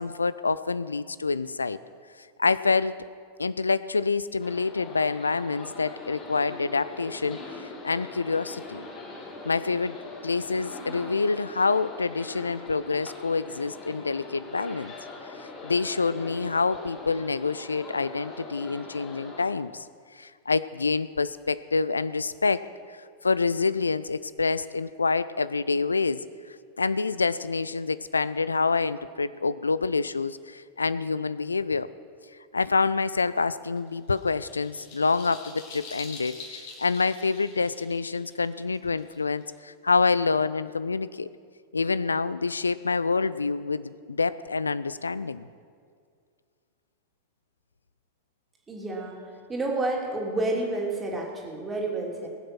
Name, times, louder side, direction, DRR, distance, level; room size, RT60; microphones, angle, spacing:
voice 1, 0.0-1.8 2.4-3.0 3.4-7.4 7.8-8.9 9.4-10.0 10.2-14.9 15.6-19.9 20.1-22.7 23.2-26.2 26.8-31.9 32.5-41.3 41.7-45.5, left 4 dB, 75° left, 16 dB, 0.3 m, -27 dB
sound 1, 4.4-19.4, left 3 dB, 30° left, 3.5 m, -42 dB
sound 2, 33.8-39.6, left 4 dB, 50° left, 2.6 m, -45 dB
voice 2, 48.7-52.3, right 2 dB, 15° right, -1 dB, 2.8 m, -30 dB
20.0 x 7.5 x 6.1 m, 2.1 s
figure-of-eight pair, 90°, 0 cm